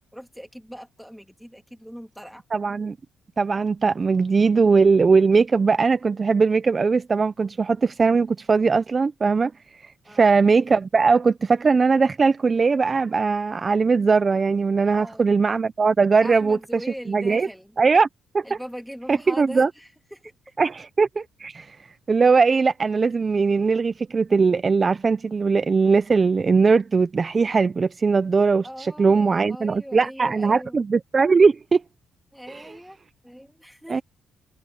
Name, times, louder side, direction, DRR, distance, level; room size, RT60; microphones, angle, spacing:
voice 1, 0.0-2.4 10.0-10.3 14.8-15.3 16.2-17.8 18.4-20.3 28.6-30.8 32.3-34.0, equal, ahead, 3.0 m, -40 dB
voice 2, 2.5-3.0 3.4-17.5 17.8-18.1 18.3-18.6 19.1-19.7 20.6-21.8 22.1-31.8 32.5-32.6 33.9-34.0, right 4 dB, 35° right, 0.5 m, -20 dB
cardioid pair, 90°, 0 cm